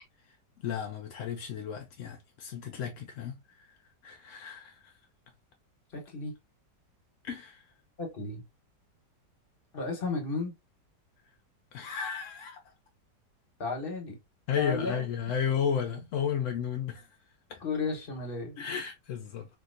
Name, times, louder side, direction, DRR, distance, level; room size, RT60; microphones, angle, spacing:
voice 1, 0.6-3.7 4.0-4.9 7.2-7.6 11.7-12.7 14.5-17.1 17.5-17.6 18.6-19.5, left 7 dB, 75° left, 0.7 m, -33 dB
voice 2, 5.9-6.3 8.0-8.4 9.7-10.5 13.6-14.2 14.5-15.1 17.6-18.6, left 3 dB, 40° left, 1.1 m, -33 dB
3.5 x 2.6 x 2.4 m
omnidirectional pair, 1.9 m